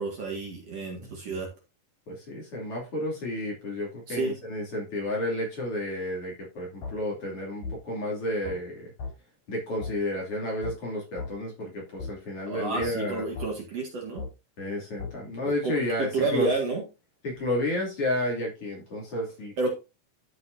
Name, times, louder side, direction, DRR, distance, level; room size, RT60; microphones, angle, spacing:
voice 1, 0.0-1.5 4.1-4.4 12.5-14.3 15.4-16.8 19.6-19.7, right 3 dB, 50° right, 0 dB, 2.7 m, -30 dB
voice 2, 2.1-8.9 9.5-13.2 14.6-16.5 17.2-19.5, left 1 dB, 45° left, -3 dB, 3.5 m, -31 dB
sound 1, 6.8-7.0 7.6-7.8 8.4-8.6 9.0-9.1 9.8-10.0 10.6-10.8 11.2-11.3 12.0-12.1 12.8-13.0 13.4-13.5 14.2-14.3 15.0-15.1, left 4 dB, 90° left, 5.8 m, -35 dB
13.0 x 5.8 x 2.6 m, 0.28 s
omnidirectional pair, 4.0 m